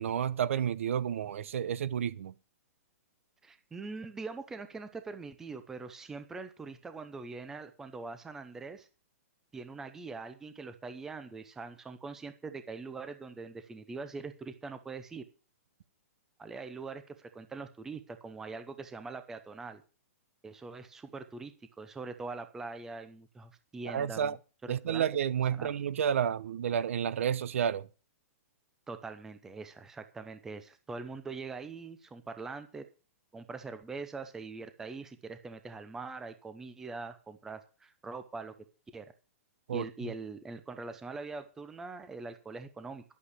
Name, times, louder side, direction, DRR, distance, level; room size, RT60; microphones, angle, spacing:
voice 1, 0.0-2.3 23.9-24.4 24.7-27.9 39.7-40.1, right 8 dB, 60° right, 0.9 m, -31 dB
voice 2, 3.4-8.9 9.5-15.2 16.4-19.8 20.4-24.4 24.6-25.1 25.5-25.7 28.9-32.9 33.3-38.5 38.9-39.1 39.7-43.0, right 4 dB, 5° right, 0.7 m, -43 dB
11.5 x 8.5 x 6.6 m
hypercardioid pair, 175°, 8 cm